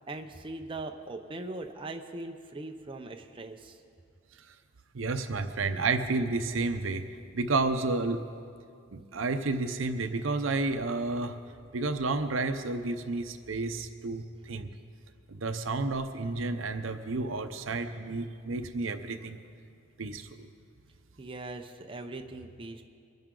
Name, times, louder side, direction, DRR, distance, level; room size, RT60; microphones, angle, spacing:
voice 1, 0.1-3.8 21.2-22.8, right 2 dB, 25° right, 4 dB, 0.7 m, -40 dB
voice 2, 4.9-7.1 7.3-8.2 8.9-11.4 11.7-14.7 15.3-19.4 20.0-20.3, right 3 dB, 70° right, 8 dB, 0.7 m, -31 dB
22.5 x 10.5 x 3.8 m, 2.3 s
head